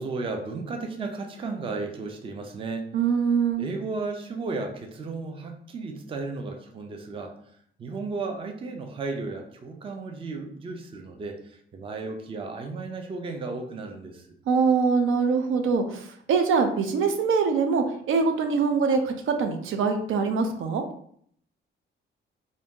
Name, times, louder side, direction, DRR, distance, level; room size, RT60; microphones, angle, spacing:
voice 1, 0.0-2.9 3.6-7.3 7.8-14.3, right 3 dB, 25° right, 4 dB, 0.4 m, -34 dB
voice 2, 2.9-3.7 14.5-20.8, right 5 dB, 85° right, 6 dB, 0.5 m, -23 dB
2.6 x 2.5 x 3.6 m, 0.64 s
wide cardioid pair, 175°, 20 cm